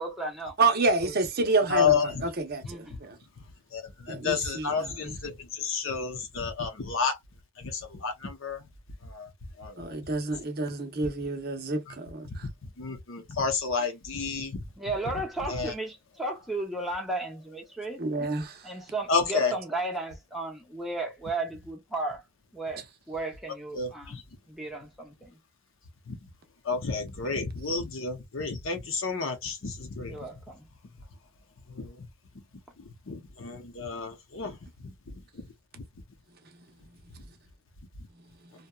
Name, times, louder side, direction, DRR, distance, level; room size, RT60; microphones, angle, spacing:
voice 1, 0.0-0.5 1.0-1.1 2.6-3.0 13.8-13.9 14.8-18.0 18.6-22.2 22.5-24.2 24.5-25.4 30.1-30.7, right 2 dB, ahead, 0.6 m, -34 dB
voice 2, 0.6-3.2 4.1-5.2 9.8-12.3 18.0-18.6, right 3 dB, 45° right, 0.6 m, -28 dB
voice 3, 1.7-2.2 3.7-7.2 7.6-8.6 9.0-9.3 9.6-9.9 11.9-12.0 12.8-14.6 15.5-15.7 19.1-19.6 23.7-24.2 26.1-26.2 26.7-30.1 31.7-31.9 33.1-34.6 34.8-34.9, left 5 dB, 60° left, 0.7 m, -30 dB
2.7 x 2.2 x 2.2 m
head